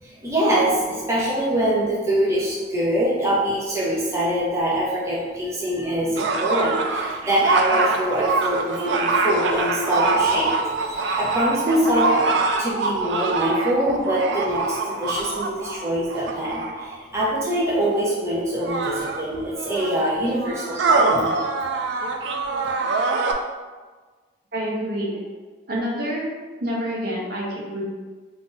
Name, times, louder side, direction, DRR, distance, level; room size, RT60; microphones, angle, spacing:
voice 1, 0.0-21.5, right 1 dB, 15° right, -7 dB, 0.6 m, -24 dB
sound 1, 6.2-17.0 17.8-17.9 18.5-23.3, right 3 dB, 85° right, 0.4 m, -24 dB
voice 2, 24.5-25.2 25.7-26.3 26.6-27.8, equal, 60° right, -4 dB, 0.8 m, -27 dB
2.7 x 2.5 x 3.8 m, 1.4 s
head